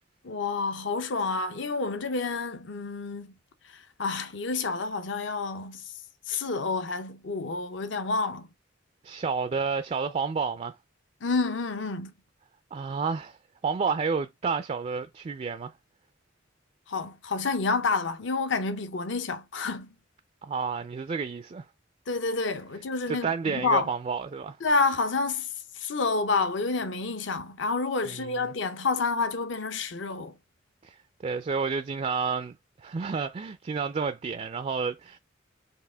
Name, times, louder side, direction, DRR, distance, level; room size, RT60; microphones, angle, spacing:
voice 1, 0.2-3.3 3.7-5.9 6.3-8.5 11.2-12.1 16.9-19.9 22.1-23.9 24.6-25.5 25.7-30.3, left 4 dB, 65° left, 0.7 m, -29 dB
voice 2, 9.0-10.8 12.7-13.4 13.6-15.7 20.4-21.6 23.1-24.6 28.1-28.4 30.8-31.0 31.2-32.6 32.8-35.2, right 5 dB, 35° right, 0.3 m, -30 dB
4.8 x 2.8 x 3.3 m
head